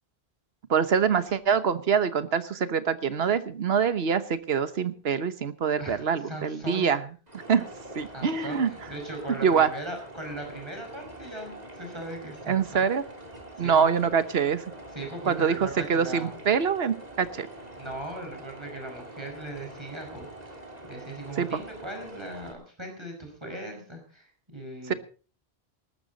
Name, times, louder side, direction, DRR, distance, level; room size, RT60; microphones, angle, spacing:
voice 1, 0.7-7.0 7.5-7.7 7.9-8.7 9.4-9.7 12.5-13.0 13.6-14.6 15.3-17.5 21.4-21.5 24.9-25.0, right 6 dB, 80° right, 13 dB, 1.3 m, -25 dB
voice 2, 5.8-6.9 8.1-12.8 13.6-13.9 14.9-16.4 17.8-20.6 20.9-24.3 24.5-25.0, right 1 dB, 25° right, 2 dB, 5.4 m, -39 dB
sound 1, 7.3-22.5, right 1 dB, 40° right, 3.2 m, -45 dB
19.5 x 13.0 x 4.0 m, 0.38 s
omnidirectional pair, 1.0 m